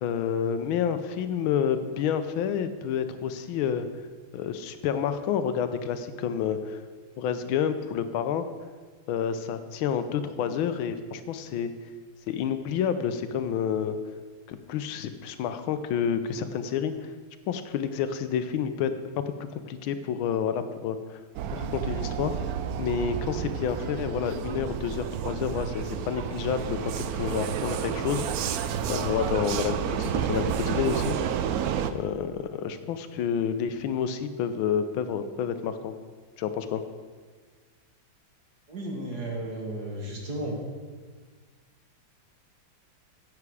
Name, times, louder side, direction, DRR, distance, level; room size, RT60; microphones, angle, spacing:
voice 1, 0.0-3.9 4.3-6.8 7.2-8.4 9.1-11.7 12.3-14.0 14.5-17.1 17.5-18.9 19.4-21.2 21.5-22.4 22.8-28.4 28.9-31.4 31.9-35.9 36.4-36.8, left 8 dB, 85° left, 10 dB, 1.5 m, -29 dB
Vehicle, 21.3-31.9, right 8 dB, 80° right, 0.8 m, -30 dB
voice 2, 38.7-40.6, right 1 dB, 55° right, -1 dB, 2.3 m, -34 dB
10.5 x 8.2 x 4.8 m, 1.5 s
omnidirectional pair, 2.2 m